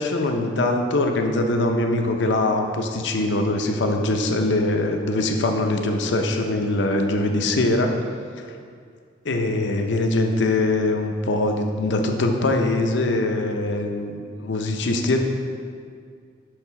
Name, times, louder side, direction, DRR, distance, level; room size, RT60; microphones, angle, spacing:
voice 1, 0.0-7.9 9.2-15.2, left 2 dB, 70° left, 4 dB, 0.6 m, -22 dB
6.4 x 3.5 x 5.7 m, 2.2 s
head